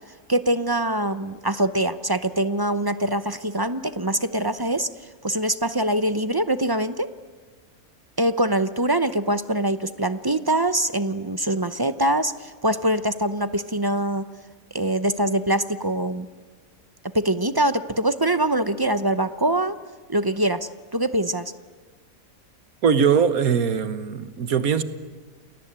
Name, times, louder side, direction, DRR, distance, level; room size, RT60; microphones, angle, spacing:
voice 1, 0.3-7.1 8.2-14.3 14.7-16.3 17.1-19.8 20.1-21.5, right 1 dB, 20° right, 0.6 m, -23 dB
voice 2, 22.8-24.8, right 6 dB, 85° right, 1.7 m, -21 dB
29.0 x 21.0 x 8.9 m
omnidirectional pair, 1.5 m